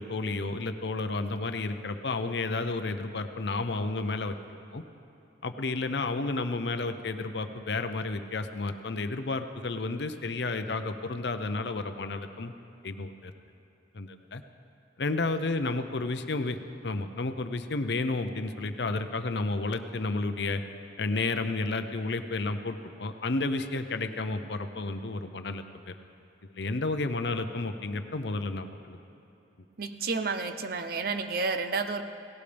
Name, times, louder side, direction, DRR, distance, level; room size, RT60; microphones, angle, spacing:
voice 1, 0.0-4.3 4.7-4.8 5.4-12.5 12.8-13.3 13.9-14.4 15.0-16.6 16.8-20.6 21.0-26.0 26.5-29.0, left 3 dB, 65° left, 9 dB, 0.7 m, -31 dB
voice 2, 29.8-32.0, right 4 dB, 55° right, 8 dB, 0.7 m, -31 dB
17.5 x 17.0 x 3.4 m, 2.9 s
head